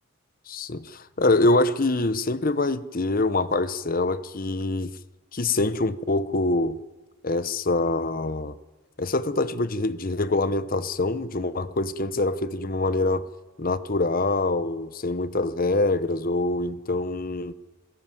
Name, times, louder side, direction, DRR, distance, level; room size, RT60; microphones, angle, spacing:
voice 1, 0.5-4.9 5.3-6.8 7.2-8.6 9.0-13.3 13.6-17.5, left 2 dB, 45° left, 0.9 m, -25 dB
27.5 x 16.0 x 9.2 m
head